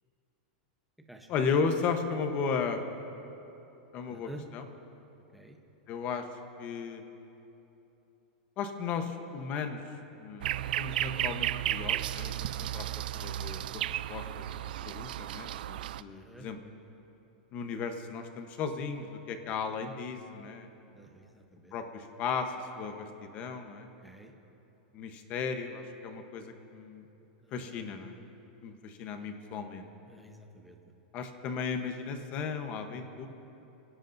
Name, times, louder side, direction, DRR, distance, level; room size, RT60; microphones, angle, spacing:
voice 1, 1.3-2.8 3.9-4.7 5.9-6.2 6.6-7.0 8.6-9.8 10.2-12.9 13.1-13.8 14.1-16.6 17.5-20.7 21.7-23.9 24.9-27.0 27.5-28.1 28.6-29.9 31.1-33.3, left 5 dB, 30° left, 6 dB, 1.0 m, -35 dB
voice 2, 4.0-4.4 5.3-5.6 16.1-16.5 20.9-21.7 24.0-24.3 27.4-27.8 30.1-30.8, equal, ahead, 2 dB, 0.9 m, -50 dB
sound 1, 10.4-16.0, right 12 dB, 75° right, 0.4 m, -34 dB
26.5 x 17.5 x 2.7 m, 3.0 s
supercardioid pair, 170°, 5 cm